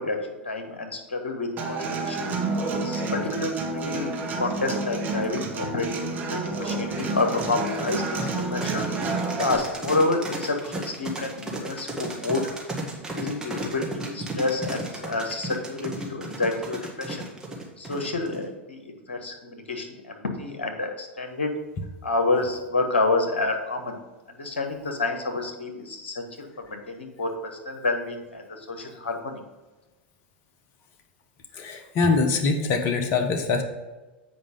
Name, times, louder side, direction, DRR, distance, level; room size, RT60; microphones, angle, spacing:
voice 1, 0.0-2.3 2.8-5.9 6.3-8.9 9.4-12.4 12.9-17.3 17.8-21.5 22.0-24.0 24.3-29.4, left 3 dB, 75° left, 4 dB, 1.4 m, -29 dB
Human voice / Acoustic guitar, 1.6-9.6, right 3 dB, 30° right, 1.5 m, -29 dB
sound 1, 7.0-18.4, right 2 dB, 10° right, 1.8 m, -34 dB
voice 2, 31.5-33.6, left 4 dB, 45° left, 5 dB, 1.3 m, -23 dB
7.9 x 5.1 x 5.2 m, 1.2 s
figure-of-eight pair, 90°, 6 cm